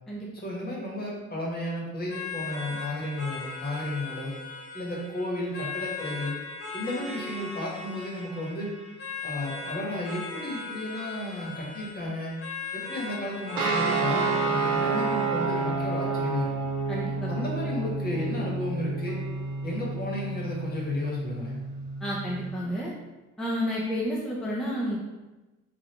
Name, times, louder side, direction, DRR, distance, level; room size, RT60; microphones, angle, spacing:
voice 1, 0.3-4.3 4.7-6.3 6.7-8.7 9.2-12.4 12.7-16.5 17.3-19.2 19.6-21.6, left 1 dB, 30° left, -3 dB, 1.1 m, -33 dB
sound 1, 2.1-17.1, left 4 dB, 85° left, 0.8 m, -39 dB
sound 2, 13.5-22.5, right 4 dB, 85° right, 0.6 m, -29 dB
voice 2, 16.9-17.3 22.0-22.9 23.4-25.0, equal, ahead, -5 dB, 0.5 m, -30 dB
3.3 x 2.3 x 2.8 m, 1.1 s
cardioid pair, 90°, 30 cm